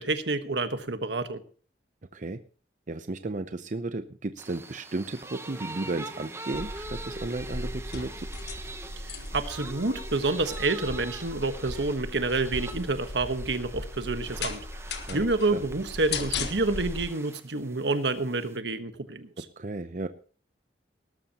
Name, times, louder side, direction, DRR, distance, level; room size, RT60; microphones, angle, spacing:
voice 1, 0.0-1.4 9.0-14.6 15.1-19.4, right 3 dB, 80° right, 10 dB, 1.3 m, -28 dB
voice 2, 2.9-8.3 15.1-15.3 15.5-15.6 19.4-20.1, right 2 dB, 45° right, 10 dB, 0.7 m, -34 dB
sound 1, 4.4-18.6, right 2 dB, 15° right, 1.0 m, -44 dB
sound 2, 6.5-17.0, left 3 dB, 75° left, 1.6 m, -37 dB
18.5 x 13.0 x 3.0 m, 0.41 s
head